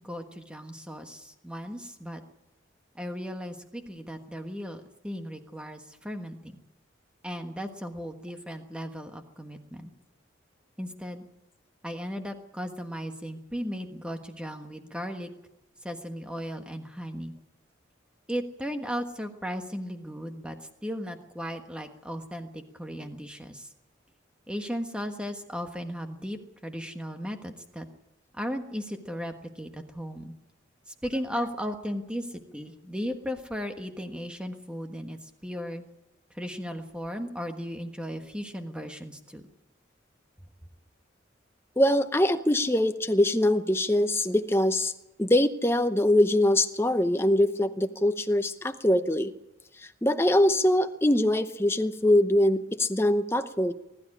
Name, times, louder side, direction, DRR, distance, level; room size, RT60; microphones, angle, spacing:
voice 1, 0.0-2.2 2.9-6.6 7.2-9.9 10.8-11.2 11.8-15.3 15.8-17.3 18.3-20.6 20.8-23.7 24.5-27.9 28.3-30.4 30.9-35.8 36.3-39.4, equal, 5° right, 5 dB, 1.4 m, -36 dB
voice 2, 41.8-44.9 45.2-49.3 50.0-53.7, left 1 dB, 10° left, 9 dB, 0.8 m, -23 dB
21.0 x 12.5 x 9.9 m, 0.98 s
head